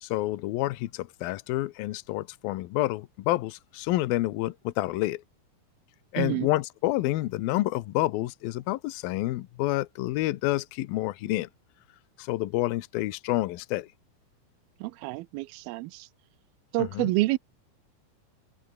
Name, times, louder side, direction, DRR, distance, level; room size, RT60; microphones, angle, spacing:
voice 1, 0.0-5.2 6.1-11.5 12.2-13.9 16.8-17.1, left 17 dB, 80° left, 2.7 m, -28 dB
voice 2, 6.2-6.5 14.8-16.1 16.7-17.4, right 20 dB, 85° right, 2.5 m, -28 dB
open air
omnidirectional pair, 4.3 m